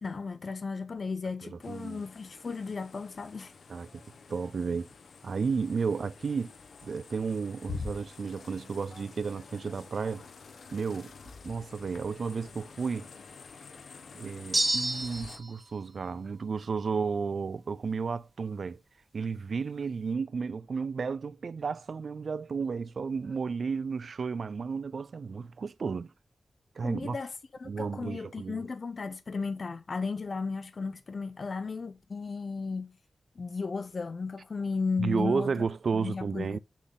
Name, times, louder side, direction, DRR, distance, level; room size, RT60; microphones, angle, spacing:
voice 1, 0.0-3.5 26.8-27.3 27.6-33.0 33.4-35.6 35.9-36.6, left 4 dB, 50° left, 0.6 m, -35 dB
sound 1, 1.6-15.4, left 5 dB, 80° left, 0.9 m, -47 dB
voice 2, 1.7-2.0 3.7-4.0 4.3-4.9 5.2-6.5 6.8-10.2 10.7-11.1 11.4-13.1 14.1-18.8 19.1-26.1 26.8-27.2 27.6-28.6 35.0-36.6, right 5 dB, 65° right, 0.4 m, -32 dB
sound 2, 14.5-15.5, right 1 dB, 20° right, 0.6 m, -28 dB
6.2 x 4.0 x 3.8 m
wide cardioid pair, 95°, 0 cm